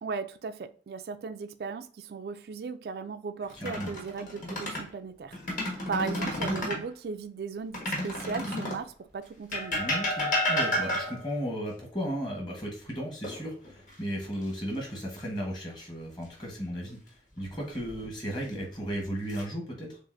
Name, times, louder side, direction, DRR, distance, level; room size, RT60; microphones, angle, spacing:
voice 1, 0.0-9.9, right 5 dB, 60° right, 0.3 m, -37 dB
sound 1, 3.5-4.9 5.3-6.9 7.7-8.9 9.5-11.3 13.2-13.9 14.3-14.5 17.5-18.1 18.8-19.4, left 1 dB, 45° left, 1.2 m, -31 dB
voice 2, 3.6-3.9 9.8-17.0 17.4-20.0, equal, 25° left, 1.2 m, -35 dB
6.7 x 2.5 x 2.5 m
head